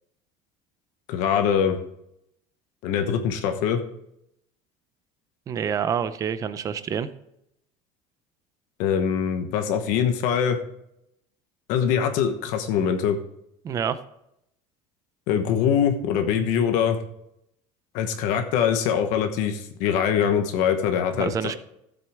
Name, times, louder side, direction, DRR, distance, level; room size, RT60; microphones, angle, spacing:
voice 1, 1.1-1.8 2.8-3.8 8.8-10.6 11.7-13.2 15.3-17.0 17.9-21.6, left 8 dB, 55° left, 6 dB, 1.1 m, -23 dB
voice 2, 5.5-7.1 13.6-14.0 21.1-21.6, right 8 dB, 20° right, 13 dB, 0.5 m, -27 dB
15.0 x 7.8 x 3.5 m, 0.78 s
cardioid pair, 175°, 15 cm